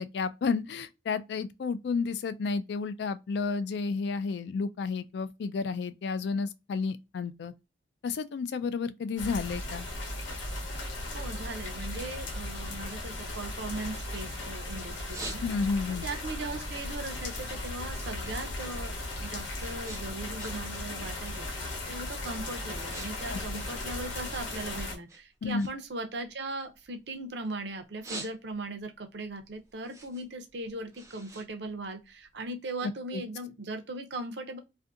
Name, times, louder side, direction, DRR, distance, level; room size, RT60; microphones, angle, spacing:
voice 1, 0.0-7.5 8.0-9.9 15.4-16.1 23.3-23.4 25.4-25.7 32.8-33.2, left 4 dB, 60° left, 0.3 m, -31 dB
sound 1, 9.2-25.0, left 2 dB, 80° left, 0.8 m, -37 dB
voice 2, 11.1-15.4 16.0-18.9 19.2-34.6, right 2 dB, 65° right, 0.6 m, -39 dB
sound 2, 15.1-15.9 16.3-18.5 18.8-20.8 21.1-21.5 22.1-22.3 22.6-23.1 23.4-24.6 25.1-27.4 27.8-28.8 29.2-32.4, right 2 dB, 15° right, 0.5 m, -46 dB
2.6 x 2.5 x 2.4 m
head